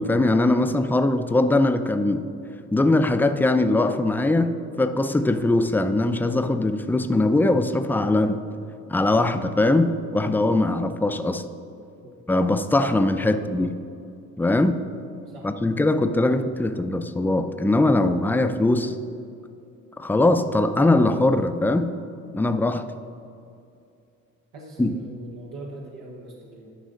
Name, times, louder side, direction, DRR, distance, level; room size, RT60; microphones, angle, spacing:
voice 1, 0.0-2.3 2.7-8.4 8.9-11.5 12.3-13.7 14.4-14.8 15.4-18.9 20.0-21.9 22.3-22.9 24.8-25.0, left 2 dB, 5° left, 8 dB, 0.4 m, -21 dB
voice 2, 24.5-26.7, right 2 dB, 90° right, -3 dB, 1.1 m, -41 dB
11.5 x 5.4 x 3.8 m, 2.6 s
cardioid pair, 90°, 30 cm